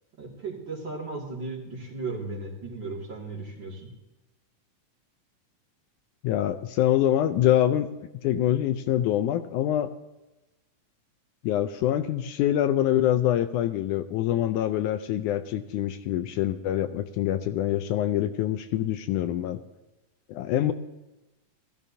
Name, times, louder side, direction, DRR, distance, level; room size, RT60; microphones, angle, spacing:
voice 1, 0.2-3.9, right 3 dB, 40° right, -2 dB, 2.7 m, -36 dB
voice 2, 6.2-7.9 8.2-9.9 11.4-19.6 20.3-20.7, left 12 dB, 80° left, 8 dB, 2.0 m, -25 dB
18.0 x 14.0 x 2.7 m, 1.0 s
omnidirectional pair, 3.7 m